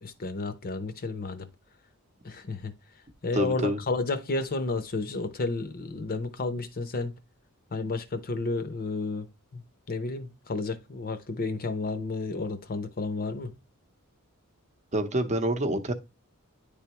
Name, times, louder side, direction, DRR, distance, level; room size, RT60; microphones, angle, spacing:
voice 1, 0.0-1.5 2.2-2.7 3.2-7.1 7.7-9.3 9.5-9.6 9.9-13.5, left 3 dB, 45° left, 0.7 m, -31 dB
voice 2, 3.3-3.8 14.9-15.9, right 1 dB, 35° right, 0.8 m, -27 dB
9.9 x 3.4 x 2.9 m
head